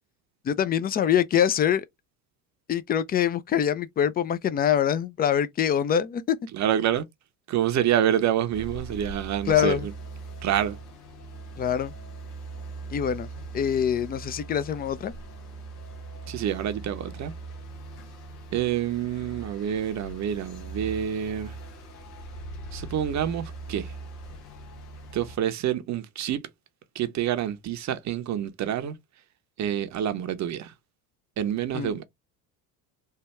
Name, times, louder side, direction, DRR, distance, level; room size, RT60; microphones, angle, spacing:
voice 1, 0.4-1.8 2.7-6.4 9.5-9.9 11.6-11.9 12.9-13.3 13.5-15.1 31.7-31.9, left 9 dB, 25° left, 0.3 m, -24 dB
voice 2, 6.5-7.0 7.5-9.9 10.4-10.8 16.3-17.3 18.5-21.6 22.7-23.9 25.1-26.5 26.9-29.0 29.6-30.7 31.4-32.1, right 10 dB, 35° right, 0.7 m, -27 dB
sound 1, 8.5-25.4, right 3 dB, 85° left, 1.1 m, -41 dB
3.3 x 2.2 x 2.9 m
hypercardioid pair, 75°, 46 cm